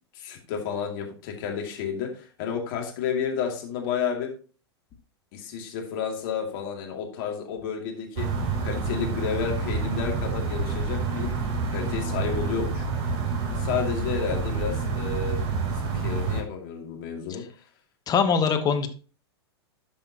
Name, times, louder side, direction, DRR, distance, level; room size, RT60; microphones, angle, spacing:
voice 1, 0.1-4.3 5.3-8.3 8.6-11.3 11.7-12.8 13.6-15.4 15.7-17.4, left 7 dB, 50° left, 1 dB, 2.5 m, -31 dB
sound 1, 8.2-16.4, right 4 dB, 40° right, 2.9 m, -28 dB
voice 2, 18.1-18.9, left 6 dB, 25° left, 8 dB, 1.3 m, -22 dB
12.5 x 5.6 x 3.0 m, 0.37 s
hypercardioid pair, 100°, 14 cm